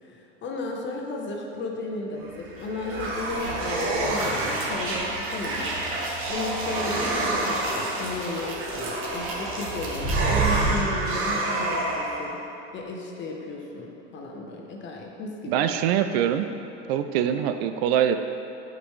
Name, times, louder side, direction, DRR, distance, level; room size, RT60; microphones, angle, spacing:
voice 1, 0.0-5.7 6.3-12.4 12.7-15.7, left 2 dB, 35° left, 0 dB, 1.0 m, -34 dB
sound 1, 2.3-12.3, right 2 dB, 35° right, 1.3 m, -27 dB
voice 2, 15.5-16.5 16.9-18.2, right 10 dB, 65° right, 9 dB, 0.4 m, -23 dB
8.2 x 5.2 x 3.2 m, 2.9 s
supercardioid pair, 115°, 35 cm